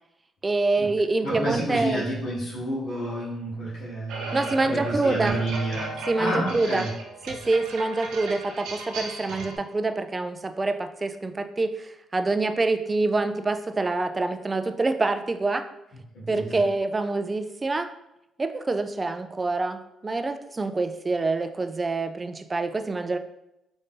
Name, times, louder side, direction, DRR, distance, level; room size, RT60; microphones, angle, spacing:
voice 1, 0.4-2.0 4.3-5.4 6.1-6.9 7.3-15.6 16.3-17.9 18.4-23.2, right 3 dB, 25° right, 8 dB, 0.3 m, -26 dB
voice 2, 1.2-6.9 16.1-16.6, right 1 dB, 70° left, -9 dB, 1.4 m, -30 dB
sound 1, 4.1-9.6, right 2 dB, 90° right, 0.7 m, -36 dB
3.9 x 2.6 x 3.7 m, 0.86 s
cardioid pair, 90°, 0 cm